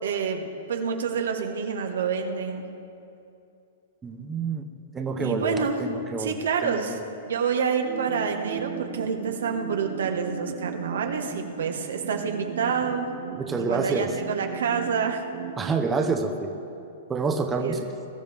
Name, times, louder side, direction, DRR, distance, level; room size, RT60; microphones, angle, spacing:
voice 1, 0.0-2.6 5.2-5.8 6.2-7.0 7.3-13.1 13.6-15.2 17.6-17.8, right 6 dB, 80° right, 4 dB, 1.5 m, -28 dB
voice 2, 4.0-4.7 4.9-6.3 6.6-7.0 13.4-14.1 15.6-16.5 17.1-17.8, right 4 dB, 15° right, 4 dB, 1.0 m, -27 dB
sound 1, 7.9-16.9, right 9 dB, 55° right, 1.0 m, -38 dB
21.0 x 12.5 x 3.6 m, 2.7 s
hypercardioid pair, 125°, 0 cm